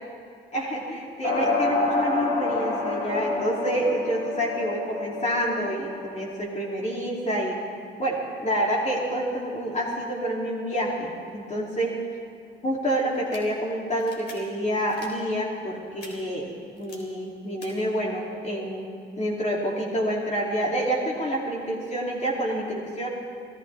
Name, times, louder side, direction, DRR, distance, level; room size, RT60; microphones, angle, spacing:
voice 1, 0.5-7.6 8.0-12.0 12.6-18.9 19.2-23.1, equal, 35° left, -3 dB, 2.7 m, -28 dB
sound 1, 1.2-6.2, left 3 dB, 85° left, 3.7 m, -28 dB
sound 2, 13.1-13.4 14.0-14.3 14.9-15.1 16.0-16.1 16.8-17.0 17.6-17.7, left 3 dB, 55° left, 4.0 m, -45 dB
26.0 x 16.0 x 3.4 m, 2.5 s
cardioid pair, 90°, 20 cm